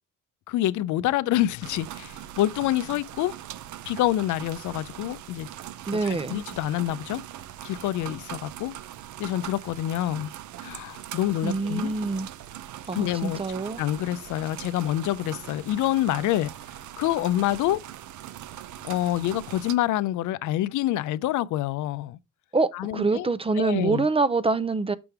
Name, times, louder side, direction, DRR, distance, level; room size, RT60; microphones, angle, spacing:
voice 1, 0.5-3.4 3.8-5.5 5.9-7.2 7.6-8.8 9.2-10.3 10.6-11.9 12.9-13.4 13.8-16.5 17.0-17.8 18.8-22.2 22.7-23.3 23.6-24.1, left 14 dB, 80° left, 0.5 m, -27 dB
sound 1, 1.6-19.7, right 12 dB, 70° right, 0.6 m, -41 dB
voice 2, 5.9-6.4 11.4-12.3 12.9-13.8 22.5-24.9, right 3 dB, 20° right, 0.5 m, -25 dB
6.9 x 3.4 x 5.8 m
cardioid pair, 90°, 30 cm